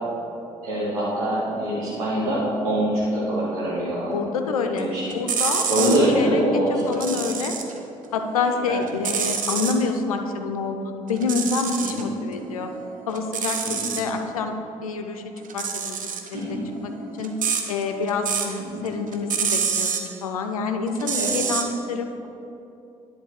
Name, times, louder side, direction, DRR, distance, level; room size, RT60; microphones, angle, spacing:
voice 1, 0.6-4.1 4.8-5.0 5.7-6.7 6.9-7.0 8.7-8.8 11.8-12.0 13.6-13.9 16.3-16.6 18.7-18.8 21.1-21.3, right 1 dB, 75° right, -9 dB, 1.4 m, -24 dB
voice 2, 4.1-7.5 8.1-12.7 13.1-14.5 14.8-15.2 15.5-16.1 16.5-16.6 16.8-16.9 17.2-17.3 17.7-22.3, left 4 dB, 80° left, 6 dB, 0.4 m, -27 dB
sound 1, 4.8-6.1 6.8-7.8 8.1-9.8 11.1-12.0 12.4-14.1 15.4-18.6 18.9-20.1 20.9-21.6, right 7 dB, 50° right, 0.8 m, -27 dB
10.5 x 3.9 x 4.7 m, 2.8 s
figure-of-eight pair, 45°, 18 cm